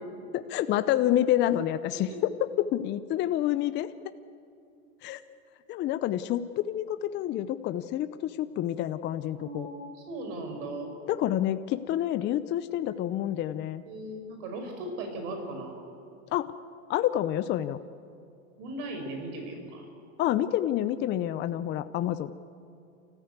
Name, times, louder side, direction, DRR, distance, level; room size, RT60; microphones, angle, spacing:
voice 1, 0.3-2.3 2.6-3.9 5.0-5.2 5.7-9.7 11.1-13.8 16.3-16.5 16.9-17.8 20.2-22.3, left 12 dB, 25° left, 11 dB, 0.6 m, -28 dB
voice 2, 9.4-11.0 13.9-15.7 18.6-19.8, right 2 dB, 60° right, 4 dB, 5.5 m, -37 dB
29.0 x 14.5 x 8.1 m, 2.5 s
hypercardioid pair, 120°, 40 cm